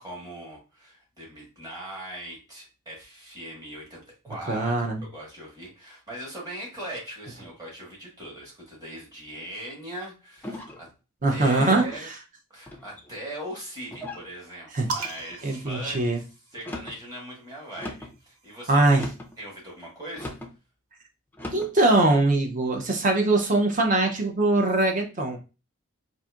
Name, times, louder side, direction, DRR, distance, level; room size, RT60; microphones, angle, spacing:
voice 1, 0.0-10.9 11.3-12.1 12.5-16.2 16.5-19.0 19.4-20.4, right 1 dB, 20° right, -4 dB, 1.5 m, -40 dB
voice 2, 4.5-5.0 11.2-11.9 14.7-14.9 15.4-16.2 18.7-19.0 21.5-25.4, right 2 dB, 35° right, 3 dB, 0.6 m, -22 dB
sound 1, 10.4-10.9 11.6-12.0 12.7-13.2 13.9-14.3 15.0-15.4 16.5-17.0 17.8-18.2 18.9-19.4 20.2-20.5 21.3-21.7, left 1 dB, 10° left, 0.4 m, -38 dB
sound 2, 14.9-16.7 17.8-19.5, right 4 dB, 85° right, 0.5 m, -38 dB
4.1 x 2.5 x 2.4 m, 0.31 s
head